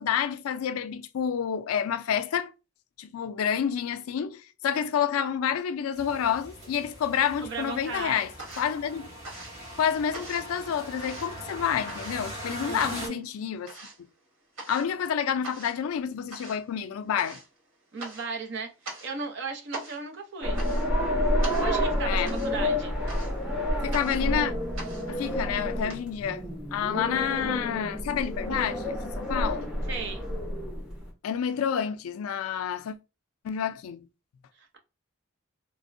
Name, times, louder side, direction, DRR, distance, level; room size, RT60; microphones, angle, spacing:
voice 1, 0.0-2.5 3.0-8.3 8.6-9.1 9.8-13.7 14.7-17.4 22.1-22.5 23.8-24.5 25.1-26.4 26.7-29.7 31.2-33.0 33.4-34.0, left 8 dB, 90° left, 0.3 m, -29 dB
sound 1, 5.9-13.1, equal, 35° right, 1.1 m, -41 dB
sound 2, 6.6-7.4 7.7-26.0, right 2 dB, 75° right, 1.2 m, -44 dB
voice 2, 7.4-8.2 12.5-13.2 17.9-18.7 19.0-20.6 21.6-22.9 29.9-30.3, right 4 dB, 55° right, 0.6 m, -36 dB
sound 3, 20.4-31.1, left 1 dB, 5° right, 0.6 m, -29 dB
3.4 x 2.0 x 2.5 m
head